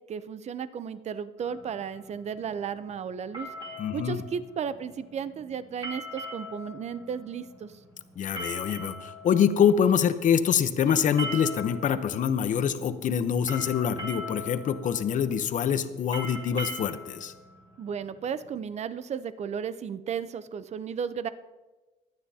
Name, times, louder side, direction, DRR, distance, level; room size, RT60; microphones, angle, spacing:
voice 1, 0.1-3.5 3.9-7.7 17.8-21.3, right 7 dB, 40° right, 13 dB, 0.7 m, -34 dB
sound 1, 1.4-18.6, equal, 25° right, 3.1 m, -42 dB
voice 2, 3.8-4.2 8.2-17.3, left 8 dB, 50° left, 11 dB, 0.8 m, -25 dB
22.5 x 9.5 x 2.8 m, 1.2 s
cardioid pair, 110°, 17 cm